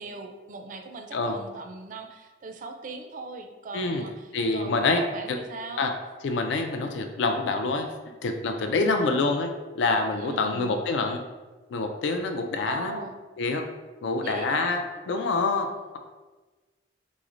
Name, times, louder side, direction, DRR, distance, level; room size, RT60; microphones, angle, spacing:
voice 1, 0.0-5.9 8.8-9.3 10.2-10.7 12.7-13.2 14.2-14.8, right 3 dB, 45° right, 5 dB, 0.3 m, -39 dB
voice 2, 4.3-5.0 5.3-5.4 5.8-5.9 6.2-7.9 8.2-9.5 9.8-11.2 11.7-13.0 13.4-13.6 14.0-15.7, left 3 dB, 70° left, 5 dB, 0.3 m, -26 dB
4.0 x 3.0 x 2.5 m, 1.2 s
head